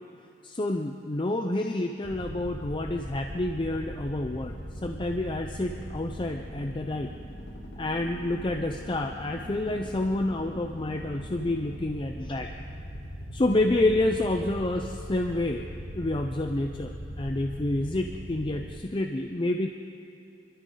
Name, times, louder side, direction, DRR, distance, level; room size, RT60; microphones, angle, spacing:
voice 1, 0.4-7.1 7.8-12.5 13.3-15.7 15.9-19.7, left 2 dB, 30° left, 4 dB, 0.6 m, -28 dB
sound 1, 2.0-18.7, equal, 75° left, 3.7 m, -40 dB
24.5 x 13.5 x 3.9 m, 2.8 s
head